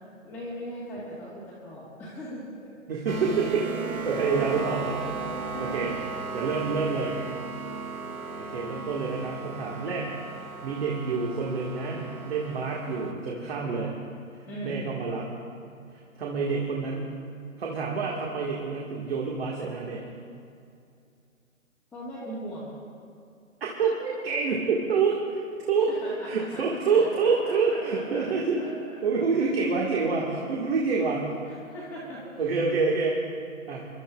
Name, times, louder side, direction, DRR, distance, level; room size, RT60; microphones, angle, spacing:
voice 1, 0.2-2.7 4.2-4.3 5.3-6.1 12.5-12.7 14.4-14.9 21.9-22.8 26.0-28.3 28.6-29.0 31.4-32.2, equal, 5° left, -11 dB, 1.6 m, -40 dB
voice 2, 2.9-5.1 5.6-6.0 6.3-7.2 8.4-10.1 10.6-13.9 14.6-15.3 16.2-17.1 17.6-20.1 23.6-25.9 26.2-28.6 29.0-31.3 32.4-33.2 33.7-33.8, right 4 dB, 45° right, -2 dB, 1.9 m, -27 dB
sound 1, 3.1-13.1, right 4 dB, 90° right, 1.1 m, -35 dB
29.0 x 12.0 x 2.4 m, 2.5 s
hypercardioid pair, 150°, 42 cm